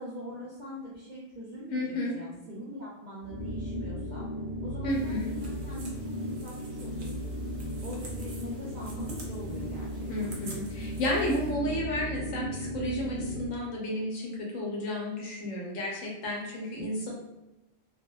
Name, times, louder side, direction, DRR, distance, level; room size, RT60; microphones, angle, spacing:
voice 1, 0.0-4.3 4.6-7.4 7.8-10.4, equal, 70° right, -6 dB, 0.4 m, -43 dB
voice 2, 1.7-2.1 4.8-5.3 10.1-17.1, left 1 dB, 80° left, -2 dB, 1.1 m, -32 dB
sound 1, 3.2-13.6, equal, 60° left, 0.8 m, -36 dB
sound 2, 4.9-11.5, right 2 dB, 90° right, 1.0 m, -48 dB
2.6 x 2.1 x 2.2 m, 0.97 s
omnidirectional pair, 1.4 m